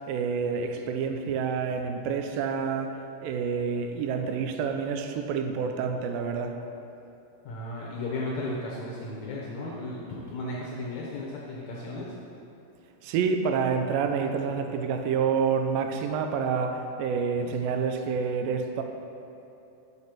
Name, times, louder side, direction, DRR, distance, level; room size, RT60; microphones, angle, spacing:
voice 1, 0.1-6.6 13.0-18.8, right 6 dB, 85° right, 5 dB, 2.2 m, -28 dB
voice 2, 7.4-12.1, left 2 dB, 75° left, -4 dB, 1.7 m, -35 dB
6.7 x 5.2 x 5.8 m, 2.8 s
omnidirectional pair, 4.1 m